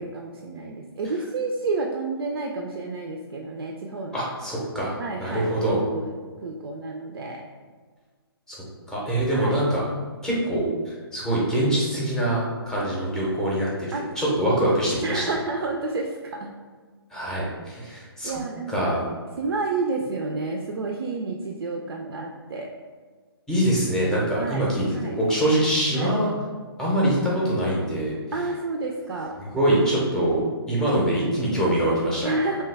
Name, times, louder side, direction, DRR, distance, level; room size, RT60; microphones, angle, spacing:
voice 1, 0.0-4.3 5.0-6.1 6.4-7.4 9.3-9.6 13.9-14.1 15.0-16.5 18.2-19.0 19.4-22.7 24.4-25.1 25.9-26.1 28.3-29.4 32.2-32.6, right 3 dB, 70° right, 1 dB, 0.4 m, -30 dB
voice 2, 4.1-4.9 5.2-5.8 8.5-8.6 8.9-9.9 10.2-15.2 17.1-18.4 18.7-19.0 23.5-26.3 26.8-28.1 29.4-30.4 30.7-32.3, right 1 dB, 5° left, -6 dB, 0.6 m, -24 dB
2.8 x 2.2 x 3.3 m, 1.5 s
figure-of-eight pair, 140°, 13 cm